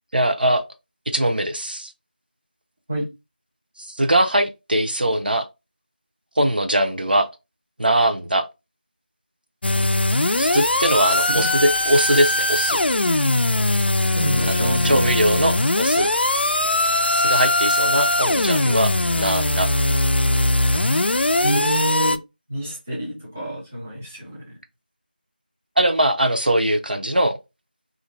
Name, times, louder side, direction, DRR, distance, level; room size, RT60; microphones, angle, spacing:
voice 1, 0.1-0.6 1.1-1.9 3.8-5.5 6.4-7.3 7.8-8.5 10.4-12.8 14.5-16.1 17.1-19.7 25.8-27.4, right 1 dB, 65° right, 0.6 m, -21 dB
sound 1, 9.6-22.2, left 2 dB, 85° left, 0.4 m, -20 dB
voice 2, 11.3-11.6 14.1-15.0 21.4-22.2 22.5-24.6, right 1 dB, 10° right, 0.5 m, -27 dB
2.5 x 2.1 x 4.0 m
figure-of-eight pair, 175°, 5 cm